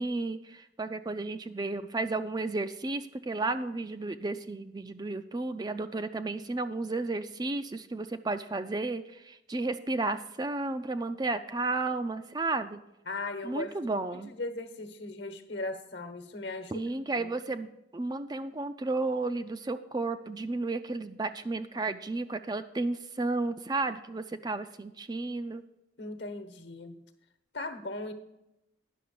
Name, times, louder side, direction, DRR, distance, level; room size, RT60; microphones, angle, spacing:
voice 1, 0.0-12.8 13.4-14.3 16.7-25.6, right 3 dB, 20° right, 10 dB, 0.4 m, -33 dB
voice 2, 13.1-16.8 17.2-17.3 26.0-26.9 27.5-28.1, left 2 dB, 60° left, 8 dB, 1.2 m, -38 dB
10.0 x 6.2 x 6.7 m, 0.89 s
head